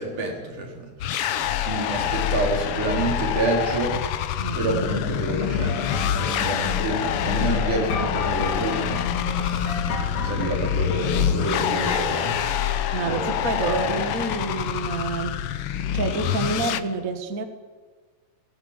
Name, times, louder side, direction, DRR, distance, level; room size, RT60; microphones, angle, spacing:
voice 1, 0.0-4.0 4.5-9.8 10.2-12.4 13.1-13.2 13.6-14.0, right 2 dB, 80° right, 1 dB, 5.4 m, -28 dB
sound 1, 1.0-16.8, left 10 dB, 70° left, 1.4 m, -26 dB
voice 2, 4.4-4.9 12.9-15.4 15.7-17.4, right 4 dB, 35° right, 7 dB, 1.7 m, -28 dB
sound 2, 4.7-13.2, left 5 dB, 85° left, 4.6 m, -31 dB
20.0 x 16.5 x 9.0 m, 1.4 s
omnidirectional pair, 3.5 m